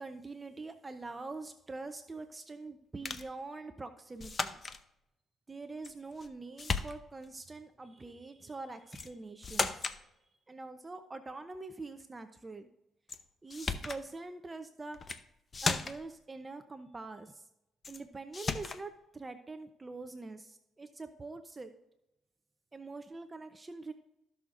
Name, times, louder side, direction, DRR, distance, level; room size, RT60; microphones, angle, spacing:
voice 1, 0.0-4.6 5.5-10.0 10.5-12.7 13.4-15.0 15.6-17.4 17.9-21.7 22.7-23.9, right 3 dB, 25° right, 8 dB, 0.7 m, -44 dB
sound 1, 3.0-3.3 4.2-4.8 5.8-6.3 6.6-7.3 8.9-9.1 9.4-10.0 13.1-13.2 13.5-14.0 14.9-15.2 15.5-16.1 17.8-18.0 18.3-18.8, left 4 dB, 35° left, 0.7 m, -35 dB
15.5 x 6.4 x 2.6 m, 0.85 s
cardioid pair, 90°, 0 cm